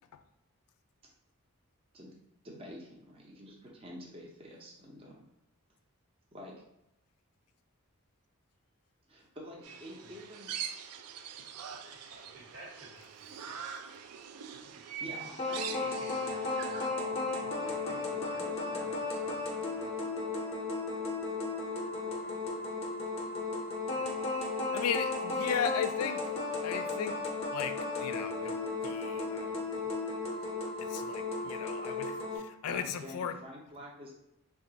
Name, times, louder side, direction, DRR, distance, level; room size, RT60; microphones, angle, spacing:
voice 1, 2.4-5.3 6.3-6.5 9.1-10.5 14.6-16.2 16.8-19.6 32.7-34.1, equal, 25° right, -2 dB, 0.5 m, -49 dB
sound 1, 9.6-16.9, right 8 dB, 85° right, 0.4 m, -43 dB
voice 2, 11.9-14.0 14.7-15.3 15.7-19.4 19.8-20.0 23.9-24.1, right 1 dB, 60° right, -3 dB, 1.3 m, -53 dB
sound 2, 15.4-32.4, left 3 dB, 25° left, 0.6 m, -35 dB
voice 3, 24.7-26.2 26.6-27.2 27.5-28.6 28.8-29.5 30.9-32.1 32.6-33.3, left 8 dB, 85° left, 9 dB, 0.3 m, -35 dB
3.4 x 2.3 x 3.9 m, 0.85 s
head